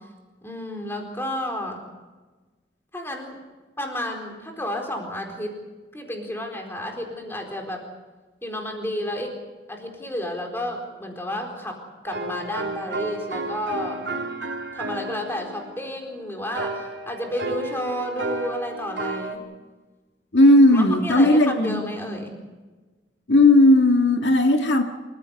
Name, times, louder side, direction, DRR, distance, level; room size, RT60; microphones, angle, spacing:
voice 1, 0.4-1.8 2.9-3.4 3.8-5.5 5.9-7.8 8.4-9.3 9.7-11.8 12.0-14.0 14.7-19.4 20.7-22.4, left 1 dB, 15° left, 2 dB, 4.2 m, -31 dB
sound 1, 12.1-19.4, right 2 dB, 80° right, 2.7 m, -32 dB
voice 2, 20.3-21.9 23.3-24.8, left 1 dB, 80° left, 4 dB, 1.8 m, -16 dB
27.5 x 15.0 x 8.2 m, 1.3 s
head